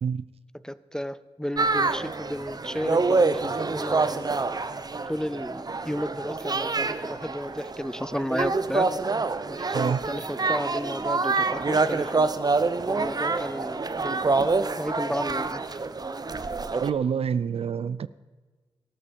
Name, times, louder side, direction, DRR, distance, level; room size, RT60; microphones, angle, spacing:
voice 1, 0.6-4.3 5.1-8.9 9.5-12.2 12.9-14.3 14.8-15.8, equal, 5° left, 0.5 m, -33 dB
sound 1, 1.6-16.9, right 3 dB, 35° right, 0.7 m, -26 dB
voice 2, 16.8-18.1, right 7 dB, 65° right, 0.5 m, -27 dB
13.5 x 12.5 x 5.3 m
cardioid pair, 55°, 11 cm